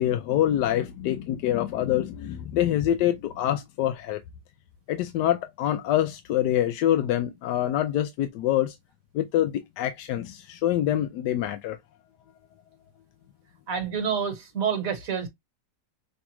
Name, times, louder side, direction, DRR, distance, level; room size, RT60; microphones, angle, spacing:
voice 1, 0.0-4.2 4.9-8.8 9.1-11.8, left 12 dB, 80° left, 1.1 m, -25 dB
voice 2, 13.7-15.3, right 7 dB, 55° right, 1.5 m, -28 dB
5.9 x 2.3 x 3.0 m
omnidirectional pair, 1.9 m